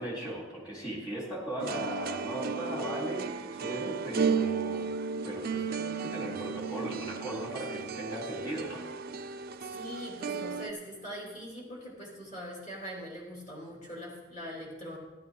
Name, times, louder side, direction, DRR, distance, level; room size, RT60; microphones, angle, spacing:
voice 1, 0.0-4.9 5.2-8.8, right 1 dB, 20° left, -4 dB, 3.8 m, -37 dB
sound 1, 1.6-10.7, right 5 dB, 50° right, 0.4 m, -34 dB
voice 2, 9.7-15.0, equal, 35° left, -4 dB, 3.0 m, -42 dB
13.0 x 12.0 x 3.8 m, 1.1 s
head